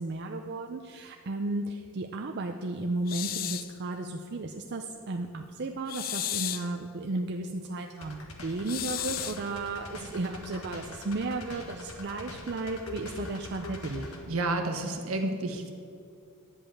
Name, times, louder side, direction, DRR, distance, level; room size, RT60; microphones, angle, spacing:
voice 1, 0.0-14.1, right 2 dB, 50° right, 4 dB, 0.5 m, -34 dB
sound 1, 3.1-3.7 5.9-6.7 8.7-9.5, left 12 dB, 40° left, 0.4 m, -34 dB
sound 2, 8.0-14.2, left 2 dB, 70° left, 1.4 m, -43 dB
voice 2, 14.3-15.7, right 2 dB, 70° right, 4 dB, 1.3 m, -30 dB
11.0 x 5.5 x 8.5 m, 2.6 s
head